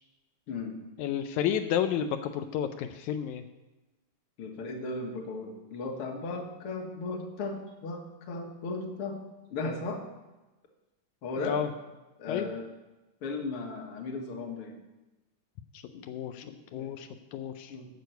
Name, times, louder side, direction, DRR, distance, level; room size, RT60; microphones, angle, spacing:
voice 1, 0.5-0.8 4.4-9.2 9.5-10.1 11.2-11.6 12.2-12.7 13.2-14.8 15.9-16.0 16.4-17.0 17.7-17.9, left 3 dB, 50° left, 3 dB, 2.1 m, -36 dB
voice 2, 1.0-3.5 11.4-11.7 12.3-12.5 16.1-16.5 16.7-17.8, left 9 dB, 85° left, 7 dB, 2.0 m, -31 dB
10.5 x 6.9 x 8.0 m, 1.1 s
omnidirectional pair, 3.4 m